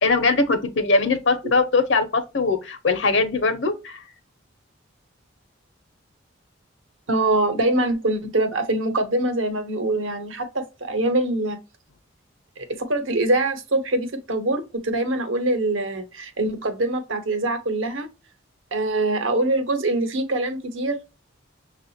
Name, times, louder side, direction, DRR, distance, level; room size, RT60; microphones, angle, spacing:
voice 1, 0.0-4.0, left 3 dB, 65° left, 0.8 m, -21 dB
voice 2, 7.1-11.6 12.6-18.1 18.7-21.0, right 2 dB, 80° right, 1.0 m, -24 dB
6.3 x 2.4 x 2.6 m
head